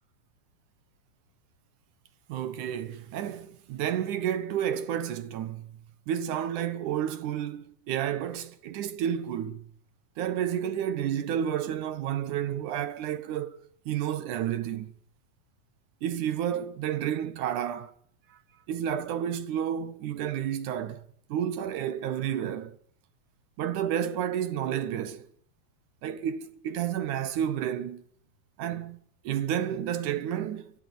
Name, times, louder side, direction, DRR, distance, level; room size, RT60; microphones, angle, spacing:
voice 1, 2.3-5.8 6.1-9.7 10.2-13.6 13.9-14.9 16.0-17.9 18.3-18.4 18.7-22.8 23.6-25.3 26.0-28.0 28.6-29.0 29.2-30.7, right 10 dB, 65° right, 2.2 m, -31 dB
24.0 x 16.0 x 9.4 m
omnidirectional pair, 4.5 m